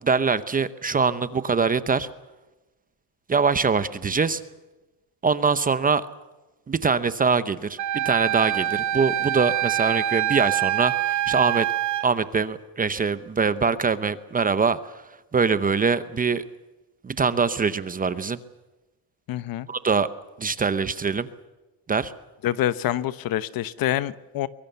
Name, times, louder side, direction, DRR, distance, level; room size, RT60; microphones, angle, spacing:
voice 1, 0.0-2.1 3.3-4.4 5.2-6.1 6.7-11.7 12.0-14.9 15.3-16.4 17.0-18.4 19.7-20.1 20.4-21.3 21.9-22.1, right 5 dB, 20° right, 13 dB, 0.8 m, -23 dB
Wind instrument woodwind instrument, 7.8-12.1, right 13 dB, 40° right, 1.1 m, -25 dB
voice 2, 19.3-19.7 22.4-24.5, left 12 dB, 50° left, 16 dB, 1.0 m, -26 dB
23.5 x 23.0 x 6.9 m, 1.1 s
cardioid pair, 155°, 45 cm